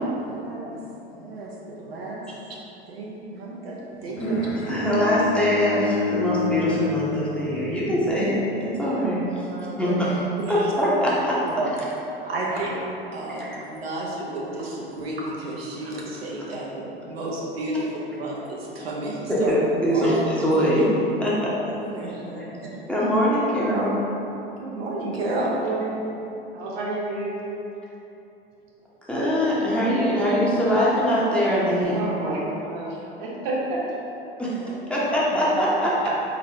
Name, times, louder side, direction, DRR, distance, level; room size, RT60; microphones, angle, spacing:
voice 1, 0.2-0.8 1.1-2.2 2.9-4.5 9.5-10.0 10.4-10.7 11.5-11.7 12.3-12.8 13.1-19.5 19.9-20.2 21.9-22.7 24.6-25.5, right 2 dB, 70° right, -4 dB, 0.7 m, -32 dB
Bowed string instrument, 4.2-8.4, left 5 dB, 85° left, 0.6 m, -30 dB
voice 2, 4.2-9.5 9.8-10.2 10.5-11.4 13.4-13.6 19.3-20.9 21.2-21.5 22.9-23.9 29.1-32.0 34.4-34.6 34.9-36.1, equal, 5° left, -8 dB, 0.9 m, -22 dB
voice 3, 25.3-26.2 26.5-27.3 31.9-34.0, right 2 dB, 50° right, -5 dB, 1.1 m, -30 dB
4.1 x 4.0 x 2.8 m, 3.0 s
figure-of-eight pair, 85°, 31 cm